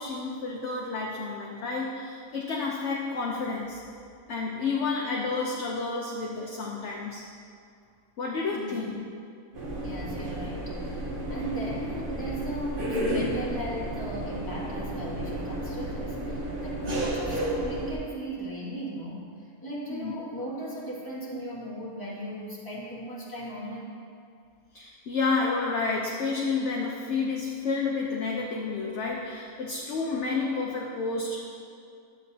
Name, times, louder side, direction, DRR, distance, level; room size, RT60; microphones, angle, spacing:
voice 1, 0.0-3.8 4.3-7.2 8.2-9.0 19.9-20.1 24.7-31.4, left 4 dB, 55° left, -2 dB, 1.0 m, -30 dB
sound 1, 9.5-18.0, right 1 dB, 40° right, 1.2 m, -32 dB
voice 2, 9.8-19.3 19.6-23.9, right 1 dB, 15° left, -8 dB, 2.0 m, -37 dB
11.5 x 8.2 x 2.8 m, 2.3 s
omnidirectional pair, 1.5 m